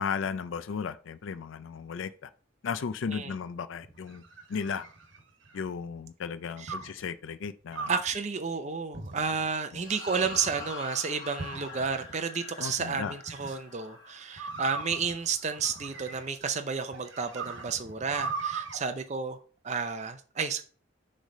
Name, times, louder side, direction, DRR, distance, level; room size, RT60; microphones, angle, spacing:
voice 1, 0.0-2.3 2.6-4.2 4.5-4.8 5.5-7.9 9.7-9.8 12.6-13.1, left 6 dB, 75° left, 0.4 m, -35 dB
sound 1, 3.8-5.7 6.7-7.0 7.7-8.2 8.9-9.5 10.1-10.7 11.4-12.2 13.3-13.6 14.4-16.4 16.9-18.8, right 4 dB, 70° right, 1.2 m, -39 dB
voice 2, 7.9-19.4 19.6-20.6, right 5 dB, 35° right, 0.5 m, -31 dB
sound 2, 9.8-16.3, left 4 dB, 20° left, 1.5 m, -46 dB
6.4 x 3.3 x 5.3 m
head